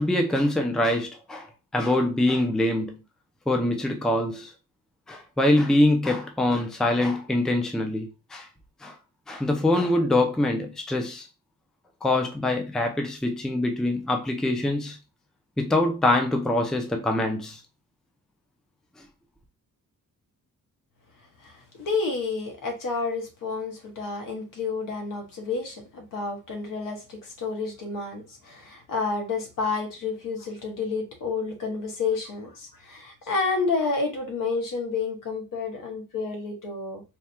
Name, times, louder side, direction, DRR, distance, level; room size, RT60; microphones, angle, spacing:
voice 1, 0.0-1.5 1.7-3.0 3.5-4.5 5.1-8.5 8.8-9.0 9.3-11.3 12.0-15.0 15.6-17.6, left 1 dB, ahead, 0.4 m, -24 dB
voice 2, 21.4-37.0, left 4 dB, 75° left, 1.2 m, -30 dB
3.4 x 2.2 x 4.3 m
wide cardioid pair, 180°, 33 cm